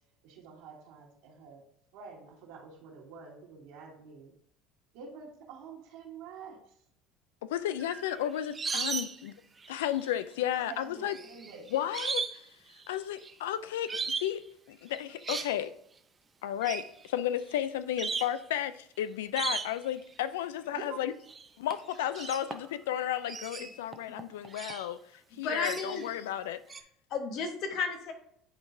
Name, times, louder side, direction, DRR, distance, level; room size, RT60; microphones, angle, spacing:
voice 1, 0.2-1.6 1.9-4.3 4.9-6.7 10.7-11.6 20.7-21.0, right 6 dB, 75° right, 2.4 m, -47 dB
voice 2, 7.4-9.3 9.7-11.2 11.7-12.4 12.9-14.4 14.7-15.7 16.4-21.1 21.6-26.6, left 11 dB, 90° left, 0.3 m, -33 dB
sound 1, 7.8-9.3 9.6-10.1 11.1-12.4 12.7-13.3 13.9-14.3 14.9-15.5 16.6-16.9 17.5-17.6 18.0-18.4 19.3-19.9 21.3-21.4 21.7-22.8 23.2-24.9 25.6-26.1 26.7-26.8, right 5 dB, 25° right, 0.6 m, -36 dB
voice 3, 25.4-26.0 27.1-28.1, left 4 dB, 60° left, 1.2 m, -33 dB
10.0 x 3.9 x 2.6 m
supercardioid pair, 90°, 0 cm